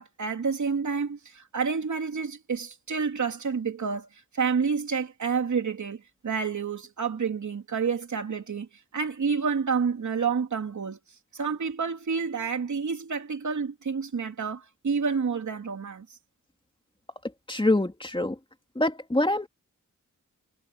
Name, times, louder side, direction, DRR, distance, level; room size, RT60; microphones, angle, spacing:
voice 1, 0.0-4.1 4.3-11.0 11.3-16.1, right 5 dB, 65° right, 3.0 m, -29 dB
voice 2, 17.5-18.4 18.7-19.5, left 1 dB, 15° left, 2.8 m, -25 dB
wide cardioid pair, 85°, 31 cm